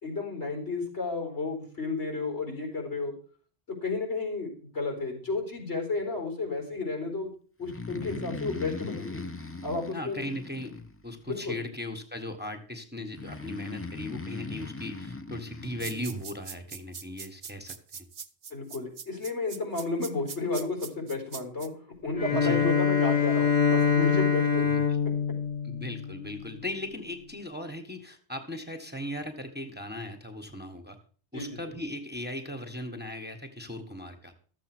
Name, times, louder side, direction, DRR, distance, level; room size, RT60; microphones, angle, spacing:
voice 1, 0.0-3.1 3.7-7.3 7.6-9.2 9.6-10.2 11.3-11.6 18.5-21.7 22.0-24.6 31.3-31.7, left 3 dB, 85° left, 2 dB, 4.5 m, -32 dB
Breathing, 7.6-11.3 13.1-16.2, left 3 dB, 15° left, 0.7 m, -39 dB
voice 2, 9.9-18.0 22.3-22.6 24.6-25.0 25.6-31.0 31.3-34.3, left 1 dB, 10° right, 4 dB, 1.3 m, -38 dB
sound 1, 15.8-21.7, right 6 dB, 50° right, 0.9 m, -41 dB
Bowed string instrument, 22.1-26.6, left 6 dB, 35° left, 1.3 m, -25 dB
13.5 x 7.5 x 6.1 m, 0.43 s
omnidirectional pair, 1.1 m